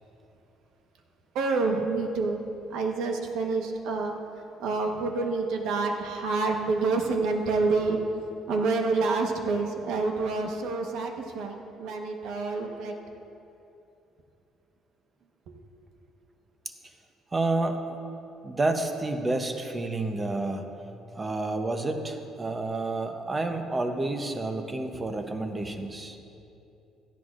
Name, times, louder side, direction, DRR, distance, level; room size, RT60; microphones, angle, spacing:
voice 1, 1.3-2.4 2.7-4.1 4.6-8.0 8.5-12.9, right 3 dB, 75° right, 3 dB, 1.1 m, -27 dB
voice 2, 17.3-18.0 18.4-20.6 21.2-26.2, right 2 dB, 15° right, 6 dB, 0.7 m, -29 dB
16.5 x 12.5 x 2.5 m, 2.8 s
cardioid pair, 155°, 0 cm